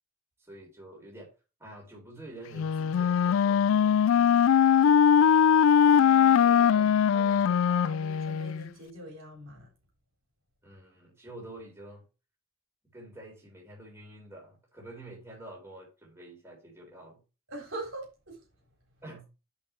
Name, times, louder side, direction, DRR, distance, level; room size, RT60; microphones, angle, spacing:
voice 1, 0.4-1.3 1.6-4.5 10.6-12.0 12.9-17.2 19.0-19.2, right 1 dB, 10° right, 3.9 m, -48 dB
Wind instrument woodwind instrument, 2.5-8.7, left 8 dB, 75° left, 0.3 m, -21 dB
voice 2, 5.9-9.7 17.5-18.4, right 1 dB, 70° right, 4.1 m, -42 dB
8.8 x 5.5 x 4.4 m
head